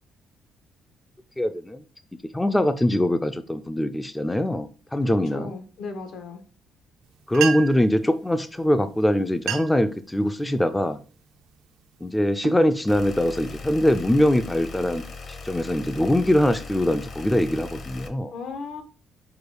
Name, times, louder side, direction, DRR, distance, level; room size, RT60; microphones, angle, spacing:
voice 1, 1.4-1.8 2.3-5.6 7.3-11.0 12.0-15.0 15.3-18.3, left 1 dB, 10° left, 9 dB, 0.3 m, -22 dB
voice 2, 5.0-6.4 18.3-18.8, left 4 dB, 80° left, 6 dB, 1.0 m, -36 dB
sound 1, 7.0-7.1 7.3-7.9 8.8-8.9 9.3-9.9 10.4-10.7 11.3-11.6 12.1-13.4, right 9 dB, 80° right, 0.5 m, -32 dB
sound 2, 12.9-18.1, left 3 dB, 45° left, 0.7 m, -39 dB
4.8 x 2.3 x 4.8 m, 0.37 s
cardioid pair, 130°, 0 cm